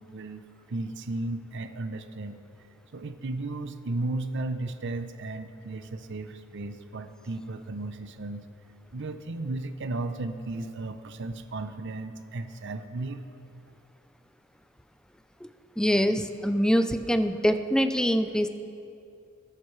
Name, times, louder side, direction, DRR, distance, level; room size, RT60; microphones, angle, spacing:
voice 1, 0.0-2.4 2.9-8.4 8.9-13.2, right 2 dB, 60° right, 9 dB, 0.6 m, -35 dB
voice 2, 15.8-18.5, equal, 5° left, 9 dB, 0.4 m, -24 dB
20.0 x 12.0 x 3.2 m, 2.5 s
head